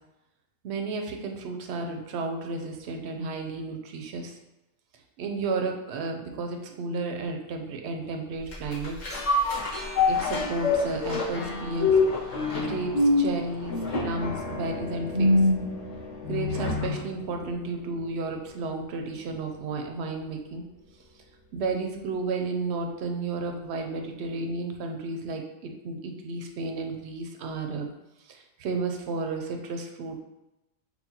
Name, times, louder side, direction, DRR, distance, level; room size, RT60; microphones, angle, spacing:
voice 1, 0.6-4.4 5.2-9.0 10.1-12.0 12.3-13.7 14.0-15.4 16.2-20.6 21.5-27.9 28.3-30.2, right 3 dB, 65° right, 3 dB, 0.8 m, -32 dB
sound 1, 8.5-17.1 17.5-17.6, left 2 dB, 60° left, 1.5 m, -26 dB
5.7 x 2.2 x 2.8 m, 0.95 s
omnidirectional pair, 1.3 m